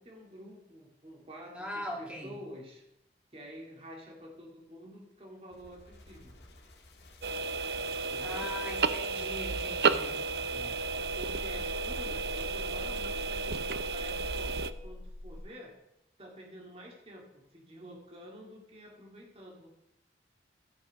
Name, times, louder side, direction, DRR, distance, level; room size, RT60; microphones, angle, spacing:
voice 1, 0.0-2.8 3.3-6.4 8.1-8.5 10.5-10.8 11.2-15.8 16.2-19.7, equal, 35° right, 0 dB, 2.0 m, -49 dB
voice 2, 1.5-2.3 8.2-10.2, left 1 dB, 5° right, -1 dB, 1.8 m, -40 dB
sound 1, 5.5-15.4, left 1 dB, 75° left, 1.6 m, -46 dB
sound 2, 7.2-14.7, right 4 dB, 65° right, 0.5 m, -32 dB
13.0 x 5.8 x 5.3 m, 0.87 s
head